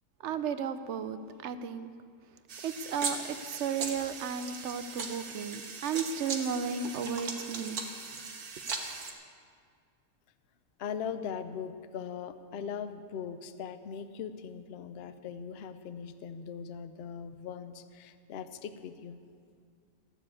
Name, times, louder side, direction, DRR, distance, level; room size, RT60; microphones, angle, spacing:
voice 1, 0.2-1.9 2.6-8.0, right 6 dB, 60° right, 11 dB, 0.8 m, -34 dB
sound 1, 2.5-9.1, right 4 dB, 85° right, 1.7 m, -39 dB
voice 2, 10.8-19.2, left 7 dB, 55° left, 11 dB, 0.7 m, -40 dB
14.5 x 7.2 x 8.3 m, 2.2 s
omnidirectional pair, 1.5 m